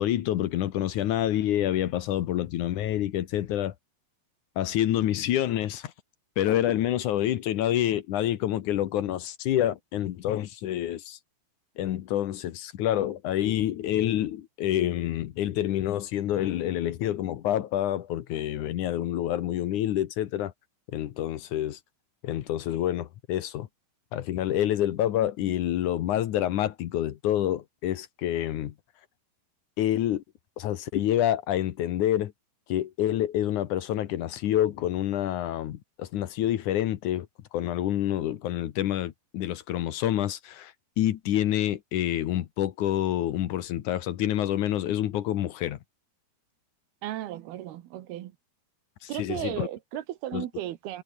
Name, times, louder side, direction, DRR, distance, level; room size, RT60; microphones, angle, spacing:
voice 1, 0.0-3.7 4.6-5.9 6.4-11.2 11.8-20.5 20.9-21.8 22.2-23.7 24.1-28.7 29.8-30.2 30.6-32.3 32.7-37.3 37.5-45.8 49.0-49.7 50.3-50.5, left 12 dB, 65° left, 2.0 m, -27 dB
voice 2, 47.0-48.3 49.1-51.0, right 13 dB, 75° right, 3.0 m, -35 dB
omnidirectional pair, 4.8 m